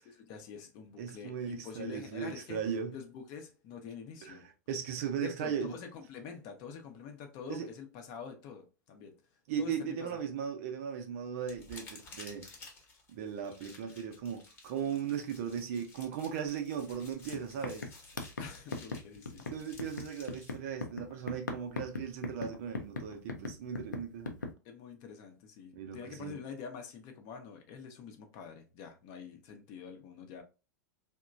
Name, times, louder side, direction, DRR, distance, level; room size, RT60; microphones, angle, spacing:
voice 1, 0.0-2.6 2.9-4.5 5.2-9.2 9.6-10.2 18.4-19.5 24.6-30.4, left 6 dB, 40° left, 0.7 m, -46 dB
voice 2, 1.0-2.9 4.2-4.4 4.7-5.7 7.5-7.7 9.5-12.5 13.1-17.9 19.5-24.4 25.7-26.4, right 7 dB, 50° right, 0.6 m, -37 dB
sound 1, 11.4-20.5, left 3 dB, 25° left, 1.0 m, -54 dB
sound 2, 16.9-17.0 17.3-24.5, left 3 dB, 80° left, 0.5 m, -40 dB
2.9 x 2.2 x 2.4 m
figure-of-eight pair, 90°, 10 cm